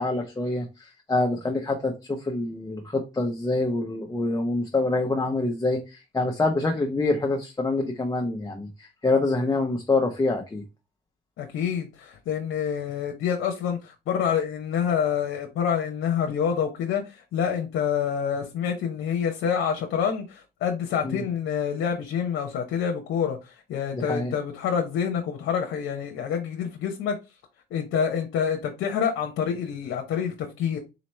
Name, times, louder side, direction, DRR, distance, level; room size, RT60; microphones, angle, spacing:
voice 1, 0.0-10.6 21.0-21.2 24.0-24.3, left 2 dB, 20° left, 0.7 m, -26 dB
voice 2, 11.4-27.2 27.7-30.8, left 7 dB, 80° left, 0.8 m, -27 dB
4.2 x 2.9 x 3.1 m
cardioid pair, 90°, 20 cm